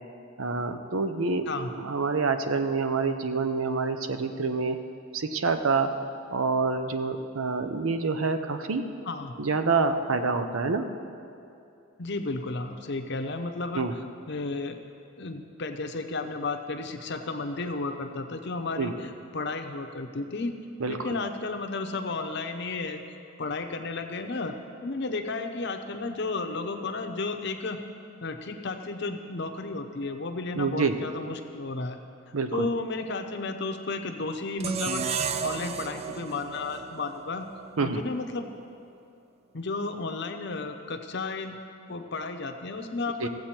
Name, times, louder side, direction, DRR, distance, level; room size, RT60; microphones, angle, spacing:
voice 1, 0.4-1.4 1.7-4.8 5.1-5.9 6.3-8.8 9.4-10.9 13.8-13.9 18.8-18.9 20.8-21.2 30.6-31.0 32.3-32.7 37.8-38.0 43.2-43.3, right 4 dB, 80° right, 8 dB, 0.7 m, -27 dB
voice 2, 9.0-9.4 12.0-13.9 14.3-14.8 15.2-20.5 20.9-23.0 23.4-24.5 24.8-27.8 28.2-32.0 32.5-35.0 35.4-37.5 37.8-38.5 39.5-41.6 41.9-43.3, left 3 dB, 55° left, 6 dB, 0.7 m, -33 dB
sound 1, 34.6-37.8, right 6 dB, 30° right, 0.3 m, -33 dB
15.5 x 7.9 x 4.4 m, 2.6 s
head